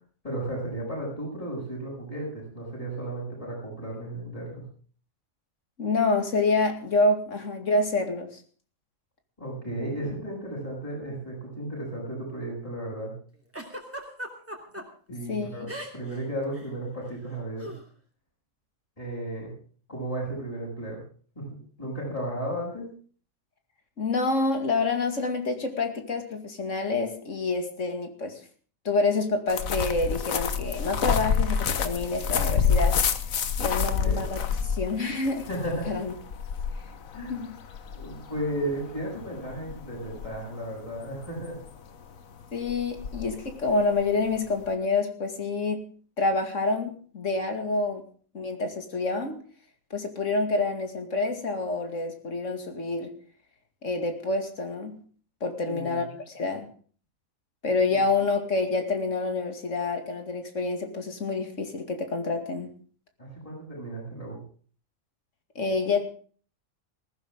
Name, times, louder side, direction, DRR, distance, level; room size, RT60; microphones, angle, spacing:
voice 1, 0.2-4.6 9.4-13.1 15.1-17.7 19.0-19.5 19.9-21.0 21.3-22.9 33.8-34.3 35.5-36.0 37.1-37.4 37.9-41.6 55.6-56.1 57.9-58.0 63.2-64.4, right 1 dB, 25° left, -5 dB, 8.3 m, -34 dB
voice 2, 5.8-8.4 15.3-15.7 24.0-28.4 28.8-33.0 33.6-35.4 35.9-36.1 37.3-37.5 42.5-45.9 46.2-48.1 48.3-49.4 49.9-53.1 53.8-55.0 55.4-56.7 57.6-62.7 65.6-66.0, left 3 dB, 65° left, 5 dB, 2.6 m, -27 dB
Giggle, 13.5-14.8 15.7-16.2 16.4-16.7 17.6-17.8, right 1 dB, 10° right, 3.0 m, -37 dB
sound 1, 29.5-44.7, left 6 dB, 85° left, 1.5 m, -29 dB
19.5 x 15.0 x 3.7 m, 0.43 s
omnidirectional pair, 1.4 m